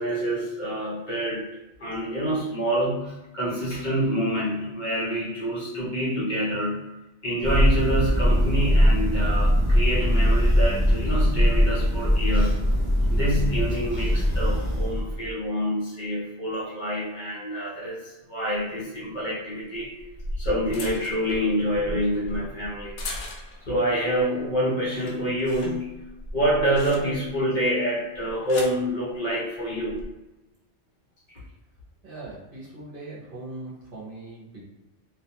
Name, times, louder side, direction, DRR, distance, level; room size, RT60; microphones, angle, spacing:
voice 1, 0.0-1.4 1.8-6.8 7.2-12.6 13.1-19.9 20.4-22.9 23.7-26.0 26.3-30.0 31.3-31.4, equal, 50° left, -7 dB, 0.7 m, -27 dB
Thunder, 7.4-15.3, equal, 25° left, 0.9 m, -21 dB
sound 1, 19.8-23.8 24.2-24.5 24.8-27.4 28.1-28.8 29.7-30.0, left 1 dB, 90° left, 0.9 m, -37 dB
voice 2, 32.0-34.6, right 2 dB, 55° right, -7 dB, 0.9 m, -40 dB
2.3 x 2.3 x 2.8 m, 0.99 s
omnidirectional pair, 1.2 m